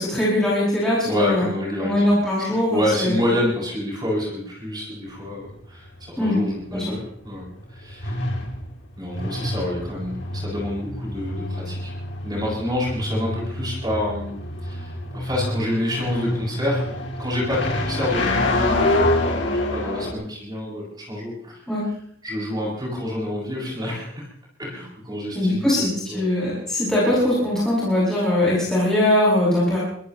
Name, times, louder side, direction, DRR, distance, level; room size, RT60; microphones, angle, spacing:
voice 1, 0.0-1.5 1.8-3.2 6.2-6.4 6.7-7.0 21.7-21.8 25.3-29.8, left 1 dB, 5° left, -9 dB, 7.3 m, -21 dB
voice 2, 1.0-2.1 2.5-8.2 9.0-11.9 12.2-16.9 17.2-21.6 22.2-24.3 24.6-26.3, left 1 dB, 20° right, -4 dB, 7.7 m, -28 dB
sound 1, 5.1-20.1, left 1 dB, 60° left, 3.1 m, -27 dB
24.0 x 18.0 x 3.2 m, 0.66 s
head